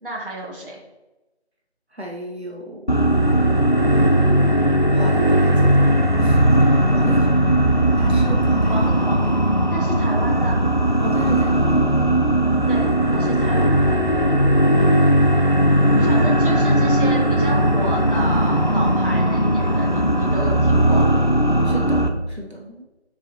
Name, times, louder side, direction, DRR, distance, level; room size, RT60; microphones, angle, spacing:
voice 1, 0.0-0.8 8.6-9.3 9.7-10.6 12.7-14.0 16.0-21.1, right 1 dB, 50° right, -3 dB, 1.3 m, -31 dB
voice 2, 1.9-3.2 4.1-6.6 6.9-7.6 8.0-8.9 11.0-11.9 15.9-16.3 21.6-22.8, equal, 70° right, -1 dB, 1.4 m, -33 dB
sound 1, 2.9-22.1, right 1 dB, 45° left, 0.5 m, -17 dB
7.0 x 4.8 x 2.9 m, 1.1 s
figure-of-eight pair, 175°, 33 cm